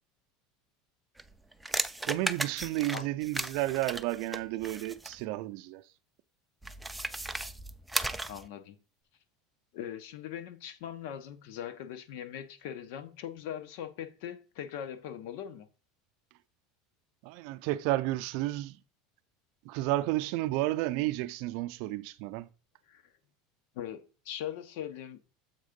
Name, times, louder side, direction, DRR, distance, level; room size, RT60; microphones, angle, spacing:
sound 1, 1.2-5.2 6.6-8.5, right 1 dB, 5° right, 0.4 m, -35 dB
voice 1, 2.0-5.8 17.2-18.8 19.6-22.5, right 17 dB, 60° right, 0.5 m, -32 dB
voice 2, 8.3-8.8 9.7-15.7 22.9-23.0 23.7-25.2, left 10 dB, 70° left, 1.0 m, -40 dB
7.3 x 3.6 x 5.2 m
supercardioid pair, 150°, 0 cm